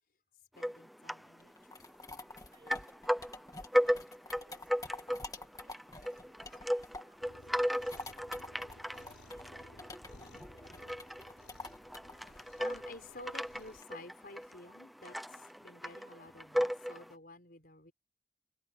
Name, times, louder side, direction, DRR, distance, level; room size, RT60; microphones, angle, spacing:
voice 1, 0.5-1.9 12.6-17.9, left 2 dB, 55° left, 5.0 m, -52 dB
sound 1, 0.6-1.4 1.6-2.4 2.7-17.1, equal, ahead, 0.7 m, -36 dB
sound 2, 1.4-7.2 7.5-13.8, left 2 dB, 20° left, 2.1 m, -48 dB
voice 2, 2.5-3.1 3.6-8.1 8.8-11.2, right 1 dB, 25° right, 6.7 m, -66 dB
Cat, 7.2-13.8, left 1 dB, 90° left, 7.5 m, -59 dB
head